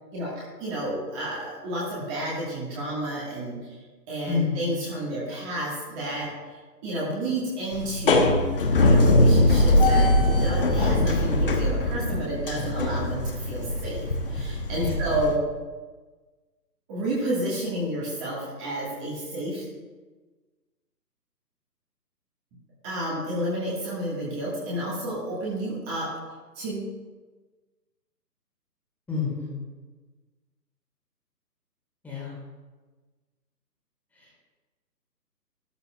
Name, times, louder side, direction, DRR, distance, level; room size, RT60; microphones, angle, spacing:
voice 1, 0.1-3.8 4.1-6.3 6.8-8.4 8.8-15.4 16.9-19.6 22.8-26.1 26.6-26.9, right 1 dB, 15° right, -6 dB, 1.9 m, -30 dB
voice 2, 4.3-4.6 14.7-15.0 29.1-29.5 32.0-32.3 34.2-34.3, left 5 dB, 5° left, -7 dB, 2.1 m, -28 dB
sound 1, 7.7-15.4, left 1 dB, 35° left, 0.9 m, -22 dB
13.5 x 12.5 x 2.5 m, 1.3 s
figure-of-eight pair, 140°, 50 cm